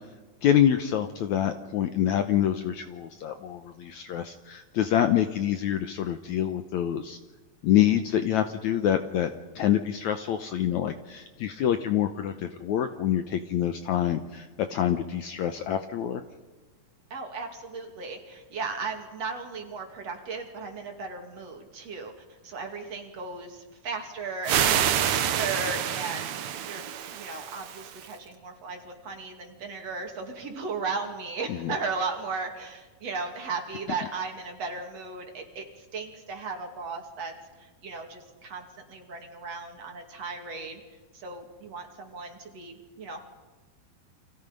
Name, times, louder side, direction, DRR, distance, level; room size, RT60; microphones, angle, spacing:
voice 1, 0.4-7.2 7.6-9.3 9.6-14.5 14.7-16.2 31.5-31.7, left 10 dB, 75° left, 8 dB, 1.8 m, -26 dB
voice 2, 17.1-22.1 22.4-26.9 27.1-40.8 41.1-43.2, right 4 dB, 45° right, 3 dB, 3.3 m, -36 dB
sound 1, 24.4-28.1, right 10 dB, 65° right, 1.9 m, -27 dB
29.5 x 25.5 x 5.3 m, 1.3 s
omnidirectional pair, 4.3 m